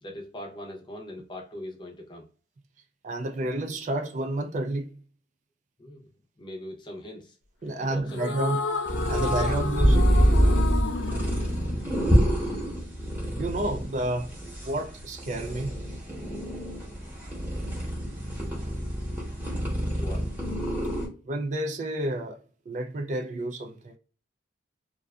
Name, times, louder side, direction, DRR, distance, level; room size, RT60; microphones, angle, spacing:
voice 1, 0.0-2.3 5.8-6.1 6.4-7.3 7.8-8.4 9.1-9.5 10.9-11.5 20.0-20.3, left 1 dB, 25° left, 0.6 m, -41 dB
voice 2, 3.0-4.9 7.6-8.6 9.1-10.1 13.3-15.8 21.3-22.4 22.7-24.0, right 1 dB, 40° right, 0.3 m, -30 dB
sound 1, 8.1-12.5, left 3 dB, 75° left, 0.4 m, -32 dB
sound 2, 8.9-21.1, equal, 10° right, 1.0 m, -26 dB
2.5 x 2.3 x 2.2 m
head